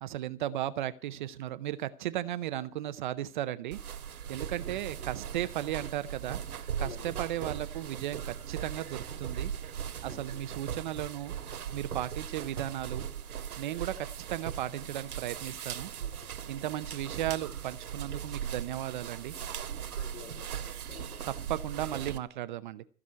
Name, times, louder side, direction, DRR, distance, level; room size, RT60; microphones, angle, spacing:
voice 1, 0.0-3.8 4.3-6.4 6.8-9.5 10.0-11.3 11.7-13.1 13.6-15.9 16.5-19.3 21.3-22.8, right 13 dB, 35° right, 13 dB, 0.6 m, -35 dB
sound 1, 3.7-22.2, right 8 dB, 85° right, 1.9 m, -39 dB
voice 2, 6.8-7.1 10.1-10.5 16.0-16.5 20.0-21.2, left 8 dB, 65° left, 5 dB, 4.2 m, -50 dB
15.0 x 6.1 x 9.5 m, 0.43 s
hypercardioid pair, 145°, 44 cm